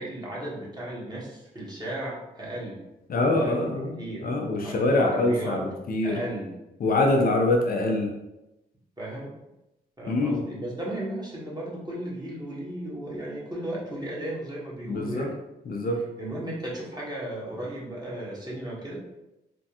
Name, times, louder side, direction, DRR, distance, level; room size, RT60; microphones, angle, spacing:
voice 1, 0.0-2.8 3.2-3.6 4.0-4.3 4.6-5.6 6.0-6.5 9.0-9.3 10.0-15.3 16.2-19.0, right 1 dB, 20° right, -6 dB, 1.4 m, -35 dB
voice 2, 3.1-3.9 4.2-6.2 6.8-8.1 10.1-10.6 14.8-15.3 15.7-16.0, left 2 dB, 45° left, 2 dB, 0.6 m, -24 dB
3.4 x 2.2 x 2.9 m, 0.94 s
hypercardioid pair, 40°, 20 cm